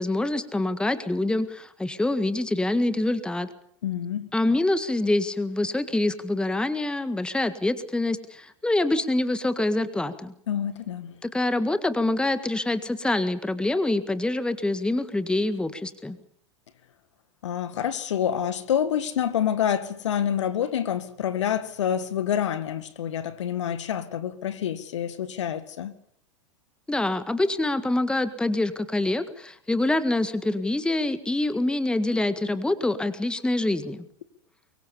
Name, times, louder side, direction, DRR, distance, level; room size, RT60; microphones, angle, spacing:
voice 1, 0.0-3.5 4.3-10.3 11.2-16.2 26.9-34.1, left 2 dB, 5° left, 1.7 m, -25 dB
voice 2, 3.8-4.3 10.5-11.1 17.4-25.9, left 9 dB, 65° left, 2.1 m, -27 dB
24.5 x 23.0 x 7.1 m
figure-of-eight pair, 90°, 16 cm